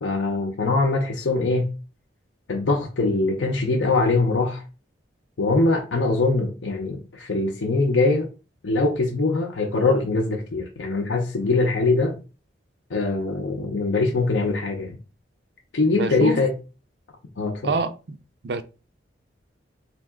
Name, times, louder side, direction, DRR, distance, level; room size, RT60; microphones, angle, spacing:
voice 1, 0.0-1.7 2.5-4.6 5.4-8.3 8.6-12.2 12.9-15.0 15.7-16.5 17.4-17.7, left 3 dB, 90° left, 0.6 m, -22 dB
voice 2, 15.9-16.4 17.6-18.2 18.4-18.6, right 3 dB, 60° right, 0.4 m, -26 dB
3.4 x 2.9 x 3.5 m
head